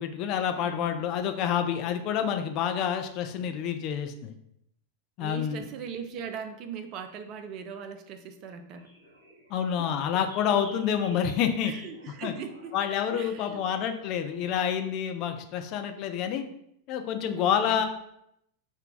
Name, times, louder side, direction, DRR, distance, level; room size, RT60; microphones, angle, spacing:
voice 1, 0.0-4.3 5.2-5.7 9.5-11.7 12.2-12.3 12.7-16.4 16.9-17.8, left 8 dB, 40° left, 6 dB, 0.4 m, -28 dB
voice 2, 0.6-1.1 5.2-8.9 9.8-9.9 11.6-12.8 13.1-13.7 17.3-17.8, right 6 dB, 40° right, 8 dB, 0.4 m, -40 dB
sound 1, 8.7-14.7, equal, 70° right, 1.2 m, -53 dB
4.4 x 2.2 x 3.8 m, 0.75 s
figure-of-eight pair, 90°, 0 cm